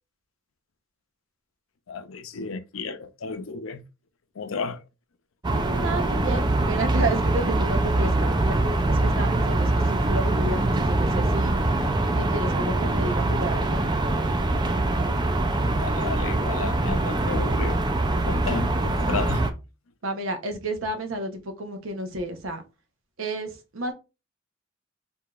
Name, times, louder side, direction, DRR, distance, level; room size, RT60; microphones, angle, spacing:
voice 1, 1.9-3.8 4.3-4.8 15.6-17.8 18.2-19.4, left 4 dB, 90° left, 0.5 m, -33 dB
sound 1, 5.4-19.5, right 2 dB, 20° right, 0.4 m, -23 dB
voice 2, 5.8-11.6 12.2-13.8 20.0-22.6 23.2-23.9, right 2 dB, 85° right, 0.8 m, -31 dB
4.7 x 2.7 x 2.4 m
head